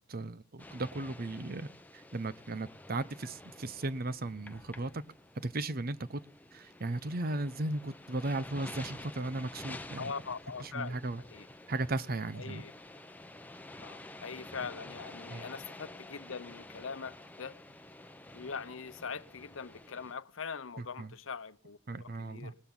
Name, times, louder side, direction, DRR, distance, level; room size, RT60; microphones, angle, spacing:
voice 1, 0.1-1.7 1.9-5.0 5.4-6.2 6.5-10.1 10.6-11.2 11.7-12.6 15.3-15.5 20.8-21.1 21.9-22.5, right 2 dB, 50° right, 0.8 m, -36 dB
sound 1, 0.6-20.1, left 2 dB, 10° left, 0.9 m, -50 dB
voice 2, 10.0-11.0 11.3-11.5 12.3-12.7 13.8-17.6 18.3-22.6, left 5 dB, 85° left, 0.9 m, -42 dB
20.0 x 13.0 x 3.9 m
head